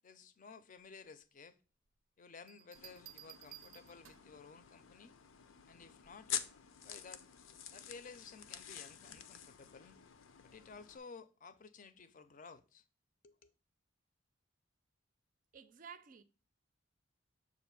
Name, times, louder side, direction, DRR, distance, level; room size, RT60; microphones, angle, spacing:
voice 1, 0.0-1.6 2.2-5.2 5.7-6.4 6.8-7.2 7.7-10.0 10.4-12.8 13.2-13.5, left 5 dB, 40° left, 0.5 m, -55 dB
sound 1, 2.5-4.4 6.0-6.4, right 13 dB, 85° right, 0.6 m, -56 dB
sound 2, 2.7-11.0, left 9 dB, 90° left, 0.5 m, -48 dB
voice 2, 15.5-16.2, right 7 dB, 45° right, 0.4 m, -52 dB
6.8 x 2.6 x 5.6 m
head